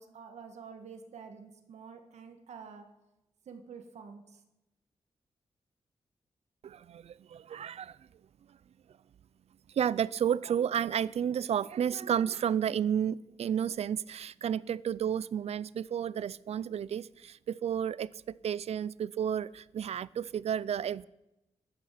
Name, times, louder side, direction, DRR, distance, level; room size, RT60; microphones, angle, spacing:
voice 1, 0.0-2.8 3.4-4.4, right 6 dB, 90° right, 6 dB, 1.7 m, -48 dB
voice 2, 6.6-8.0 9.7-21.1, right 9 dB, 70° right, 21 dB, 0.4 m, -32 dB
14.5 x 12.0 x 5.8 m, 0.93 s
wide cardioid pair, 110°, 11 cm